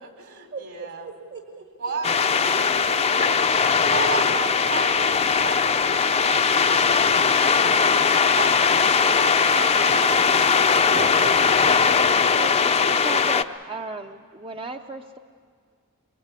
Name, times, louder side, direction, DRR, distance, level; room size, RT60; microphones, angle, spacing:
voice 1, 0.0-1.1 1.8-3.5 3.8-11.1, right 4 dB, 70° right, 4 dB, 3.9 m, -35 dB
voice 2, 0.5-1.7 4.0-4.6 10.9-11.4 11.6-13.3, right 3 dB, 50° right, 3 dB, 1.5 m, -37 dB
sound 1, 2.0-13.4, left 5 dB, 30° left, 0.6 m, -20 dB
voice 3, 12.8-15.2, right 4 dB, 25° right, 5 dB, 0.6 m, -35 dB
23.0 x 22.5 x 8.2 m, 2.1 s
head